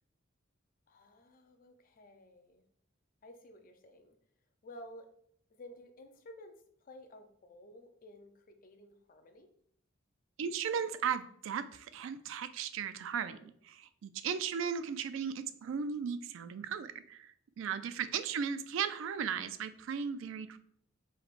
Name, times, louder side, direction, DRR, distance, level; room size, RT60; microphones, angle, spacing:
voice 1, 0.9-2.6 3.2-4.2 4.6-5.1 5.5-9.5 13.2-13.5 18.2-18.3, left 1 dB, 45° left, 7 dB, 0.5 m, -54 dB
voice 2, 10.4-20.6, right 7 dB, 85° right, 12 dB, 0.3 m, -36 dB
4.9 x 3.1 x 2.5 m, 0.65 s
head